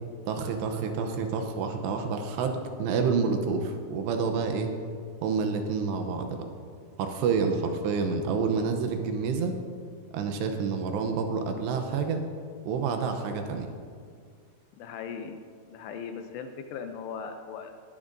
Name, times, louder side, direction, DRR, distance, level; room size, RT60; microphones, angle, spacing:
voice 1, 0.3-4.7 5.2-6.4 7.0-9.6 10.1-12.2 12.7-13.7, right 5 dB, 80° right, 5 dB, 2.8 m, -28 dB
voice 2, 14.8-15.4 15.7-17.7, left 6 dB, 80° left, 6 dB, 2.6 m, -38 dB
20.0 x 11.0 x 2.6 m, 2.1 s
omnidirectional pair, 5.2 m